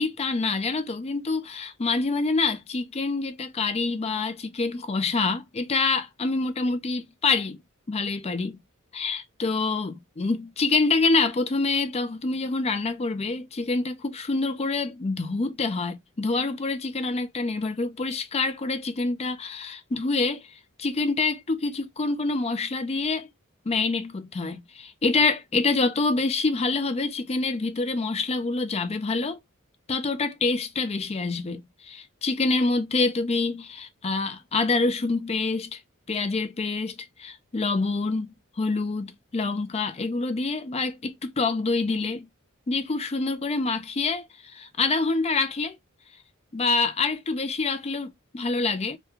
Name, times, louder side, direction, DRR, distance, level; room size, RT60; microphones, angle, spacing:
voice 1, 0.0-7.6 7.9-8.6 8.9-20.4 20.8-23.3 23.7-29.4 29.9-35.8 36.1-42.3 42.7-45.8 46.5-49.0, left 3 dB, 30° left, 0.4 m, -26 dB
3.5 x 2.2 x 2.9 m
head